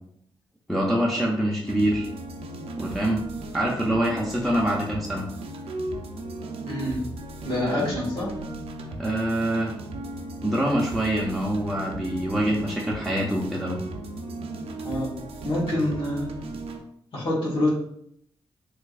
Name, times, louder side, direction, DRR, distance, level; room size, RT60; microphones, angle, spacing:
voice 1, 0.7-2.1 2.8-3.2 3.5-5.2 7.8-7.9 9.0-9.7 10.4-13.8, right 1 dB, ahead, -4 dB, 0.6 m, -25 dB
sound 1, 1.7-16.8, right 2 dB, 80° right, 0.5 m, -36 dB
voice 2, 6.6-7.0 7.4-8.4 14.8-15.1 15.4-16.3 17.1-17.7, left 1 dB, 65° left, -5 dB, 1.3 m, -26 dB
4.4 x 2.5 x 2.4 m, 0.71 s
cardioid pair, 75°, 10 cm